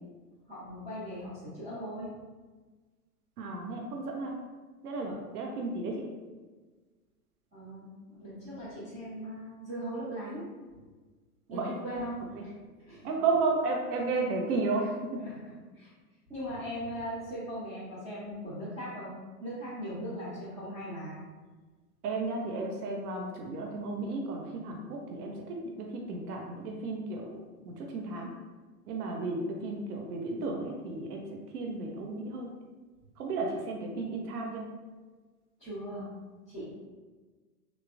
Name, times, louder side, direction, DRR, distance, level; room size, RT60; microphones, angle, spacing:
voice 1, 0.5-2.1 5.0-5.1 7.5-10.5 11.5-12.5 12.9-13.1 15.2-15.9 16.3-21.2 35.6-36.1 36.5-36.7, equal, 15° right, -12 dB, 0.7 m, -39 dB
voice 2, 3.4-4.4 4.8-5.9 11.5-11.7 12.4-12.5 13.0-15.2 22.0-28.3 28.9-32.5 33.2-34.7, right 3 dB, 70° right, 0 dB, 0.6 m, -33 dB
3.2 x 2.1 x 2.4 m, 1.3 s
hypercardioid pair, 110°, 47 cm